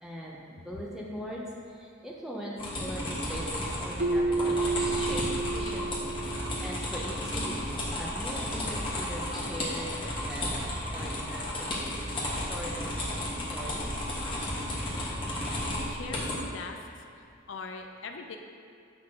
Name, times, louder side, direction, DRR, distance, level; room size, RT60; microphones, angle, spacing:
voice 1, 0.0-11.9 12.3-13.1 13.5-13.9, equal, ahead, -4 dB, 0.9 m, -41 dB
sound 1, 2.6-16.4, left 1 dB, 25° left, 1.3 m, -33 dB
Keyboard (musical), 4.0-6.8, right 3 dB, 40° right, 0.4 m, -30 dB
voice 2, 15.9-18.4, left 4 dB, 70° left, 4 dB, 0.5 m, -42 dB
8.2 x 6.0 x 3.8 m, 2.5 s
head